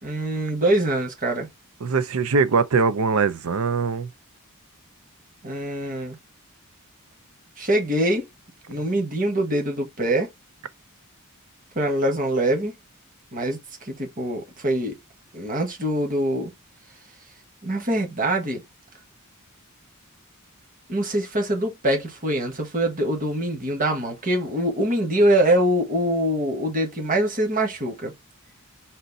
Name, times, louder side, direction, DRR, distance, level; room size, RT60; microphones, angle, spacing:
voice 1, 0.0-1.5 5.4-6.2 7.6-8.3 8.7-10.3 11.7-12.7 13.3-13.6 13.9-15.0 15.3-16.5 17.6-18.6 20.9-28.1, right 1 dB, 40° right, 1.5 m, -24 dB
voice 2, 1.8-4.1, right 4 dB, 70° right, 0.6 m, -22 dB
4.3 x 2.6 x 4.0 m
head